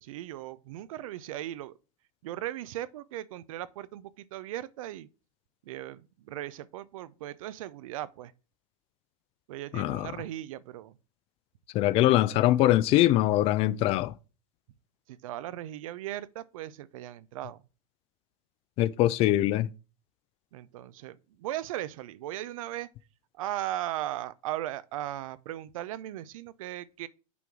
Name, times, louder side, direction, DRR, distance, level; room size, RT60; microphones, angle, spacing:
voice 1, 0.0-1.8 2.2-5.1 5.6-8.3 9.5-11.0 12.0-12.1 15.1-17.6 20.5-22.9 23.3-27.1, right 13 dB, 70° right, 0.6 m, -37 dB
voice 2, 9.7-10.1 11.7-14.1 18.8-19.7, left 14 dB, 35° left, 0.4 m, -23 dB
5.9 x 3.8 x 6.1 m
supercardioid pair, 135°, 18 cm